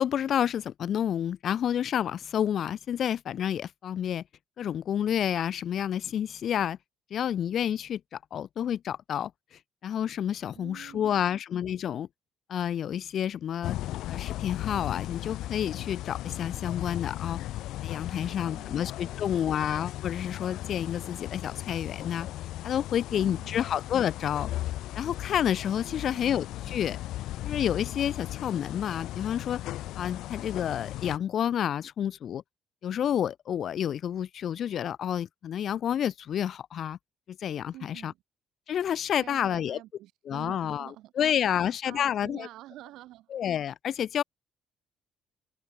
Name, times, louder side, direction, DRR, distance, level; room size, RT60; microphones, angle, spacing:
voice 1, 0.0-4.2 4.6-6.8 7.1-12.1 12.5-13.8 14.1-17.4 17.8-22.3 22.6-24.5 24.9-27.0 27.4-29.6 30.0-32.4 32.8-37.0 37.3-38.1 38.7-39.8 40.3-40.9 41.2-42.5 43.3-44.2, left 9 dB, 45° left, 0.4 m, -29 dB
voice 2, 10.5-11.3 18.1-19.6 23.1-23.7 25.9-26.8 37.7-38.2 39.2-43.4, right 15 dB, 75° right, 5.8 m, -49 dB
sound 1, 13.6-31.2, left 15 dB, 75° left, 1.8 m, -37 dB
cardioid pair, 170°, 0 cm